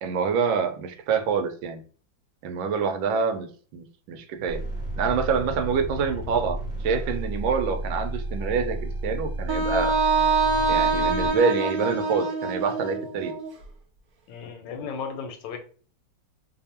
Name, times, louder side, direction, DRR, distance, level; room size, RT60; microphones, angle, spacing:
voice 1, 0.0-1.8 2.4-4.6 5.0-6.6 6.8-10.0 10.7-13.3, right 5 dB, 85° right, 7 dB, 1.4 m, -26 dB
sound 1, 4.5-11.3, right 1 dB, 30° right, 1.0 m, -32 dB
Wind instrument woodwind instrument, 9.5-13.5, right 4 dB, 65° right, 0.9 m, -25 dB
voice 2, 10.5-10.8 14.3-15.6, left 6 dB, 75° left, 5 dB, 1.2 m, -36 dB
3.4 x 2.1 x 4.2 m, 0.42 s
omnidirectional pair, 2.1 m